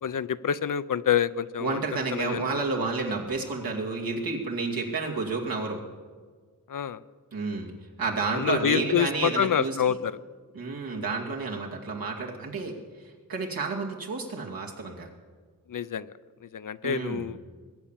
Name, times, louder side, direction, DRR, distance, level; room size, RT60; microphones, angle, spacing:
voice 1, 0.0-1.8 2.1-2.6 6.7-7.0 8.3-10.1 15.7-16.1 16.4-17.4, left 8 dB, 65° left, 15 dB, 0.6 m, -27 dB
voice 2, 1.6-5.8 7.3-7.7 8.0-10.0 10.5-15.1 16.8-17.3, right 3 dB, 90° right, -1 dB, 2.5 m, -31 dB
21.0 x 8.5 x 7.4 m, 1.5 s
wide cardioid pair, 75°, 34 cm